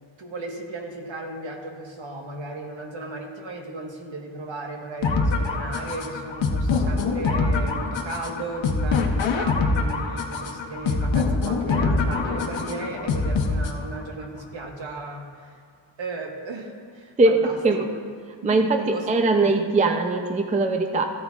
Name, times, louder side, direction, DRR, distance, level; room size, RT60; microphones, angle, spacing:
voice 1, 0.2-15.5 16.0-17.8 18.5-19.1 19.4-19.6, right 2 dB, 70° right, 1 dB, 1.4 m, -35 dB
sound 1, 5.0-14.0, left 3 dB, 70° left, 0.9 m, -24 dB
voice 2, 18.4-21.0, right 2 dB, 15° right, 5 dB, 0.4 m, -21 dB
14.5 x 13.0 x 2.4 m, 2.3 s
wide cardioid pair, 180°, 47 cm